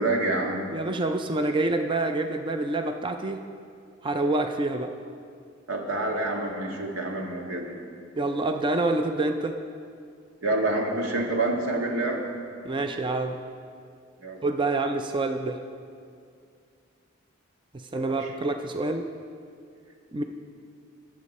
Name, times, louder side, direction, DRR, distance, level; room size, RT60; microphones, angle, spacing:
voice 1, 0.0-0.6 5.7-7.7 10.4-12.3 14.2-14.4 17.9-18.3, right 2 dB, 85° right, 1 dB, 1.7 m, -27 dB
voice 2, 0.7-3.4 4.0-4.9 8.2-9.6 12.6-13.4 14.4-15.6 17.7-19.1 20.1-20.2, right 2 dB, 25° right, 6 dB, 0.4 m, -27 dB
20.5 x 7.4 x 4.2 m, 2.3 s
head